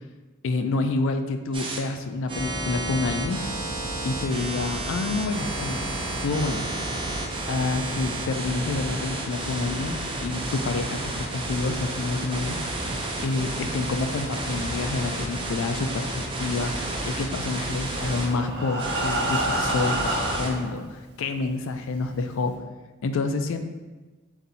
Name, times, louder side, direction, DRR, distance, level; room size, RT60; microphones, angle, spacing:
voice 1, 0.4-3.4 4.0-5.9 6.2-6.7 7.5-12.6 13.2-22.5 23.0-23.6, left 3 dB, 65° left, 7 dB, 0.4 m, -28 dB
sound 1, 1.5-1.8 2.3-18.3 18.8-20.5, right 1 dB, 25° right, 0.5 m, -31 dB
Breathing, 17.8-20.7 21.5-21.6 21.9-22.0 22.5-22.6, right 1 dB, 55° right, 0.9 m, -28 dB
4.0 x 2.6 x 4.0 m, 1.2 s
head